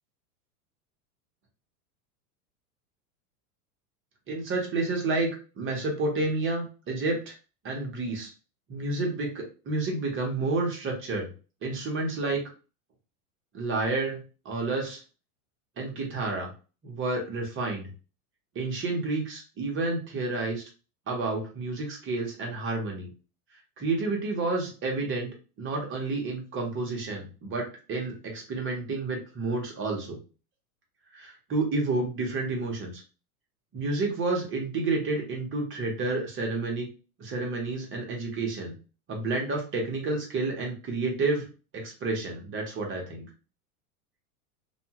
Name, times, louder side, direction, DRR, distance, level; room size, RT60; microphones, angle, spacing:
voice 1, 4.3-5.3 5.6-7.3 7.6-8.3 8.7-11.3 11.6-12.4 13.5-14.2 14.4-15.0 15.8-16.5 16.8-17.9 18.5-20.6 21.1-23.1 23.8-25.3 25.6-30.2 31.1-32.9 33.7-36.9 37.2-38.7 39.1-41.5 41.7-43.3, right 3 dB, 25° right, 0 dB, 0.9 m, -30 dB
2.6 x 2.2 x 2.8 m, 0.34 s
supercardioid pair, 125°, 46 cm